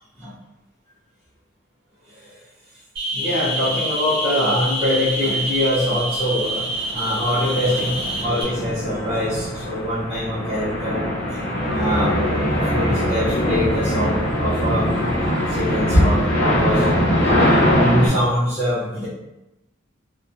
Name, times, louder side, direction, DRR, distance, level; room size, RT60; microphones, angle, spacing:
voice 1, 2.1-2.4 3.1-6.7 6.9-7.9 8.2-11.0 11.3-11.4 11.7-16.9 17.2-19.1, left 1 dB, 10° right, -15 dB, 0.7 m, -23 dB
sound 1, 3.0-8.4, right 1 dB, 30° right, 1.0 m, -26 dB
sound 2, 5.1-5.3 5.8-18.1, equal, 65° left, 0.8 m, -23 dB
sound 3, 11.6-17.8, equal, 25° left, 0.3 m, -27 dB
2.8 x 2.0 x 2.5 m, 0.95 s
head